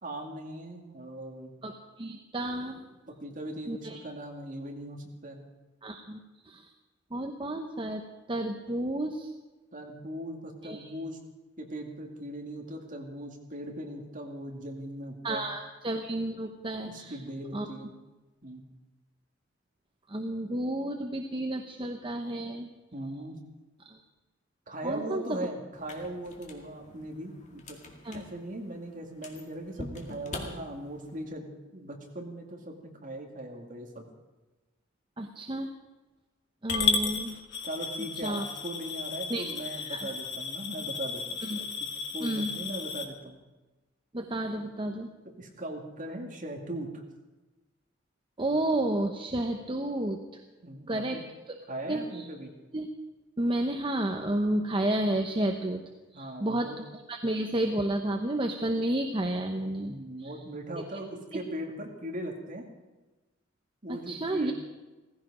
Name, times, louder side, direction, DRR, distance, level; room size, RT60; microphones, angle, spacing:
voice 1, 0.0-1.5 3.1-5.4 9.7-11.2 11.6-15.4 16.8-17.9 18.4-18.6 22.9-23.4 24.7-27.8 28.1-31.5 31.7-34.1 37.6-41.9 42.1-43.4 45.4-47.0 50.6-51.2 51.7-52.5 56.1-56.8 59.8-62.6 63.8-64.5, right 1 dB, 40° right, 1 dB, 2.4 m, -39 dB
voice 2, 1.6-2.9 3.7-4.0 5.8-6.2 6.4-6.6 7.1-9.3 10.6-10.9 15.2-17.2 17.5-17.7 20.1-22.7 23.9-24.0 24.8-25.4 28.0-28.2 35.2-35.7 36.6-37.4 38.2-38.5 39.3-39.4 39.7-40.1 41.4-41.6 42.2-42.5 44.1-45.1 48.4-50.2 50.9-51.2 51.5-51.6 51.9-52.2 52.7-52.9 53.4-55.8 56.1-60.3 63.9-64.5, right 1 dB, 25° right, 4 dB, 0.9 m, -31 dB
sound 1, 25.7-31.2, left 2 dB, 35° left, 2.1 m, -45 dB
Coin (dropping) / Glass, 36.7-43.0, left 5 dB, 60° left, 1.6 m, -33 dB
16.5 x 15.5 x 5.1 m, 1.2 s
head